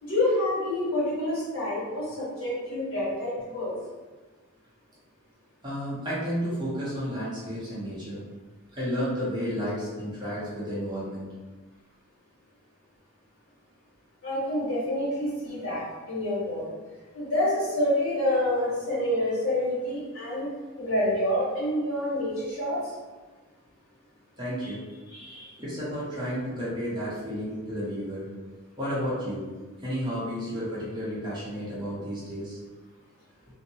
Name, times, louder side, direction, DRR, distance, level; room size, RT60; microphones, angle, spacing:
voice 1, 0.0-3.7 14.2-16.6 17.1-20.5 20.8-22.8 24.6-24.7 25.1-25.5, left 1 dB, 75° left, -8 dB, 1.4 m, -27 dB
voice 2, 5.6-8.2 8.7-11.3 24.4-24.8 25.6-28.3 28.8-29.5 29.8-32.6, equal, 20° right, -9 dB, 0.8 m, -32 dB
2.6 x 2.2 x 2.8 m, 1.3 s
head